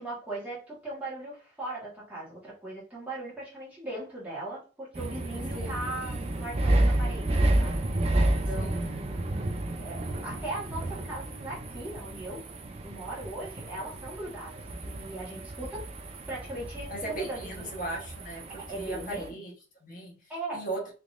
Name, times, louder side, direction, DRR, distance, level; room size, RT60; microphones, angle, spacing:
voice 1, 0.0-7.3 7.6-9.5 9.8-12.4 12.8-15.8 16.3-17.7 18.6-19.4 20.3-20.6, right 1 dB, 10° right, -7 dB, 1.4 m, -39 dB
sound 1, 4.9-19.3, right 1 dB, 35° right, 0.4 m, -31 dB
voice 2, 16.9-19.5 19.8-20.2 20.5-20.9, right 2 dB, 45° left, -3 dB, 1.2 m, -37 dB
3.6 x 2.9 x 2.5 m, 0.35 s
head